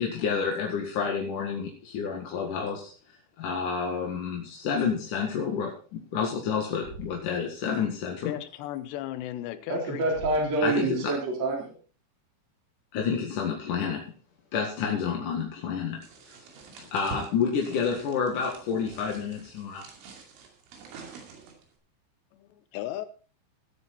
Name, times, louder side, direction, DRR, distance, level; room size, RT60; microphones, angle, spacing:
voice 1, 0.0-8.3 10.6-11.1 12.9-14.0 14.5-16.4 16.8-19.8, left 6 dB, 55° left, 2.7 m, -29 dB
Thump thud, 6.8-7.4 10.1-10.7, right 6 dB, 55° right, 3.7 m, -43 dB
voice 2, 8.2-10.0 22.3-23.1, left 13 dB, 75° left, 2.9 m, -36 dB
voice 3, 9.7-11.7, right 2 dB, 35° right, 4.4 m, -27 dB
sound 1, 16.0-21.7, right 5 dB, 80° right, 5.0 m, -46 dB
17.0 x 8.9 x 4.3 m
omnidirectional pair, 5.6 m